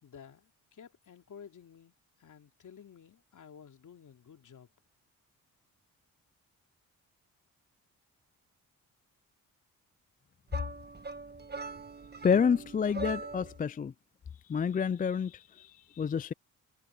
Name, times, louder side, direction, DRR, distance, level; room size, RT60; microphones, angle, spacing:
voice 1, 0.0-1.9 2.2-4.7, left 7 dB, 60° left, 3.1 m, -53 dB
sound 1, 10.5-13.6, right 3 dB, 30° right, 1.7 m, -41 dB
voice 2, 12.2-13.9 14.5-16.3, left 6 dB, 25° left, 0.4 m, -29 dB
cardioid pair, 70°, 34 cm